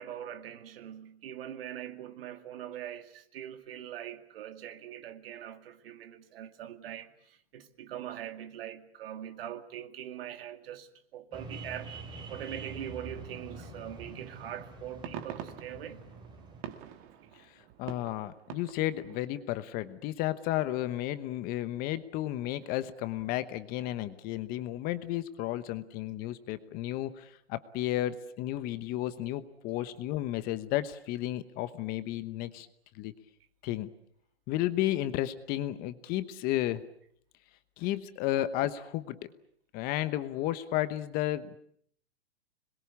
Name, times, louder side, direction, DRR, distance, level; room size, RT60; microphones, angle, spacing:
voice 1, 0.0-11.9 12.3-16.1, right 10 dB, 60° right, 2.4 m, -42 dB
sound 1, 11.3-16.6, right 3 dB, 15° right, 3.5 m, -45 dB
sound 2, 14.7-19.2, right 9 dB, 35° right, 2.2 m, -45 dB
voice 2, 17.4-32.7 32.9-33.1 33.6-33.9 34.5-36.8 37.8-39.3 39.7-41.6, left 14 dB, 25° left, 1.1 m, -33 dB
26.0 x 21.5 x 8.5 m
hypercardioid pair, 150°, 33 cm